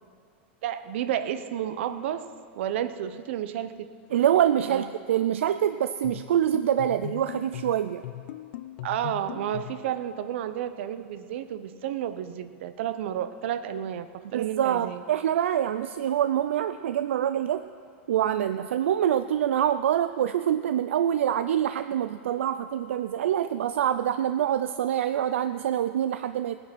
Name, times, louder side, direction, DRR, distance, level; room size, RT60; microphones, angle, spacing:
voice 1, 0.6-2.3 2.6-3.9 4.7-4.8 8.8-14.1 14.3-15.0, right 10 dB, 70° right, 12 dB, 0.8 m, -31 dB
voice 2, 4.1-8.0 14.3-17.7 18.1-26.6, right 10 dB, 90° right, 10 dB, 0.4 m, -25 dB
sound 1, 6.0-9.9, left 15 dB, 70° left, 0.5 m, -39 dB
17.5 x 10.0 x 6.1 m, 2.4 s
supercardioid pair, 130°, 7 cm